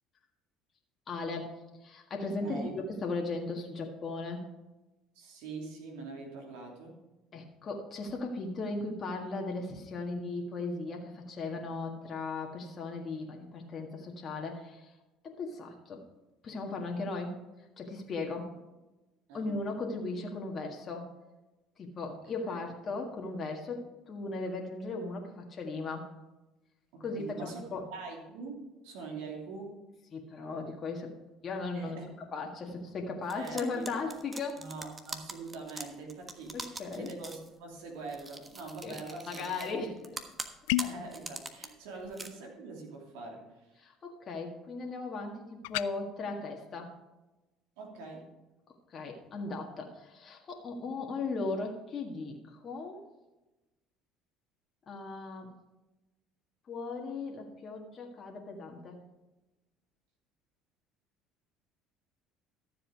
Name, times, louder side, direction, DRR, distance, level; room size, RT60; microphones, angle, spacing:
voice 1, 1.1-1.5 1.8-2.7 3.0-4.4 7.3-14.9 15.2-16.0 16.4-17.4 17.8-18.5 19.3-21.1 21.8-26.1 27.0-27.9 30.1-31.1 31.4-32.0 32.3-34.6 36.5-37.1 38.8-39.0 39.3-39.9 43.8-46.9 48.9-53.0 54.9-55.5 56.7-59.0, left 3 dB, 45° left, 1 dB, 1.8 m, -37 dB
voice 2, 2.4-2.7 5.1-7.0 19.3-19.5 22.1-22.6 26.9-29.7 31.7-32.1 33.3-33.8 34.6-39.4 39.8-39.9 40.8-43.8 47.8-48.3, right 3 dB, 75° right, 0 dB, 2.8 m, -44 dB
sound 1, 33.3-37.5 38.1-39.7 40.0-41.7 42.0-42.3, right 3 dB, 25° right, 1.3 m, -42 dB
Bottle open, 40.7-41.1 45.6-45.9, left 18 dB, 75° left, 0.3 m, -30 dB
13.0 x 7.5 x 4.7 m, 1.1 s
hypercardioid pair, 65°, 0 cm